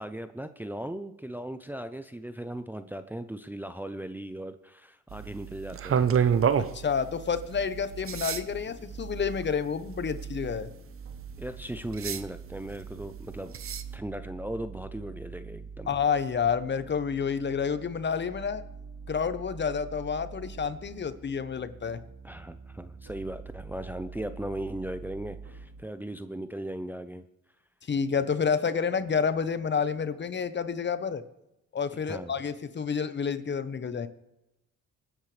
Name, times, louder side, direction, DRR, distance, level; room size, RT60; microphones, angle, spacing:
voice 1, 0.0-6.0 11.4-13.5 13.9-15.9 22.2-27.3 32.1-32.3, right 1 dB, 5° right, 9 dB, 0.6 m, -37 dB
sound 1, 5.1-14.0, right 7 dB, 45° right, 0.8 m, -32 dB
voice 2, 6.6-10.7 15.9-18.6 19.1-22.0 27.9-31.2 31.7-34.1, left 6 dB, 35° left, 12 dB, 1.0 m, -29 dB
sound 2, 7.3-25.8, right 4 dB, 60° right, 2.6 m, -45 dB
25.5 x 9.9 x 3.3 m, 0.90 s
cardioid pair, 90°, 30 cm